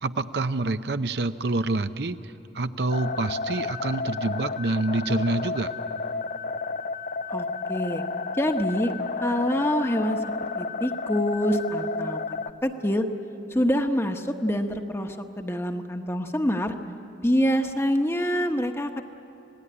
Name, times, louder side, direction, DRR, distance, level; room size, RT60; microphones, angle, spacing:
voice 1, 0.0-5.7, right 2 dB, 65° right, 10 dB, 0.7 m, -27 dB
sound 1, 2.9-12.5, left 4 dB, 45° left, 0.6 m, -31 dB
voice 2, 7.3-8.0 8.4-8.9 9.2-10.2 10.6-12.2 12.6-13.1 13.5-16.7 17.2-19.0, equal, 15° left, 6 dB, 1.1 m, -25 dB
26.5 x 18.0 x 9.9 m, 2.8 s
head